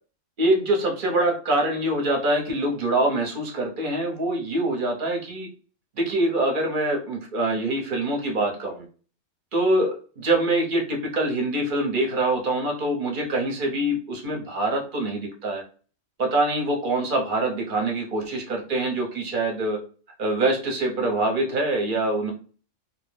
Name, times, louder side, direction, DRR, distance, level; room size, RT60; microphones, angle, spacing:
voice 1, 0.4-5.5 6.0-8.9 9.5-15.6 16.2-19.8 20.2-22.3, right 1 dB, 50° right, 1 dB, 0.8 m, -24 dB
2.3 x 2.0 x 3.1 m, 0.38 s
omnidirectional pair, 1.3 m